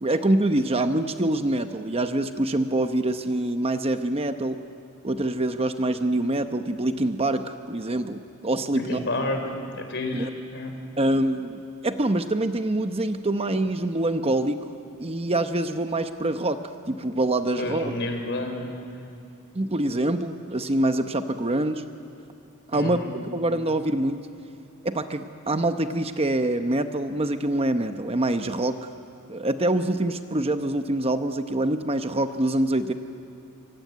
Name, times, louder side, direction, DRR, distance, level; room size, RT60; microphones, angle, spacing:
voice 1, 0.0-4.6 5.0-9.0 10.1-10.3 11.0-14.6 15.0-16.6 16.9-18.0 19.5-21.8 22.7-24.2 24.8-28.8 29.3-32.9, right 1 dB, 25° right, 8 dB, 0.9 m, -25 dB
voice 2, 8.7-9.4 9.7-10.7 16.9-17.0 17.6-18.7 22.7-23.1, left 2 dB, 55° left, 5 dB, 4.2 m, -30 dB
25.0 x 24.5 x 9.4 m, 2.5 s
head